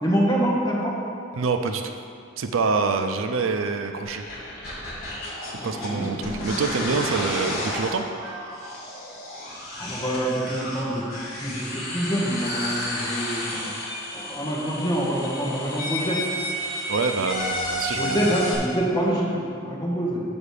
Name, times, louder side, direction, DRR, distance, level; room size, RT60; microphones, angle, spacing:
voice 1, 0.0-1.0 5.6-6.1 9.8-11.0 11.4-13.7 14.1-16.2 17.9-20.2, equal, 20° left, -5 dB, 1.3 m, -26 dB
voice 2, 1.3-1.9 2.4-4.3 5.6-8.0 16.9-18.3, right 4 dB, 80° right, 6 dB, 0.5 m, -26 dB
sound 1, 4.0-18.5, left 1 dB, 45° left, 2.0 m, -31 dB
7.1 x 4.9 x 6.5 m, 2.4 s
head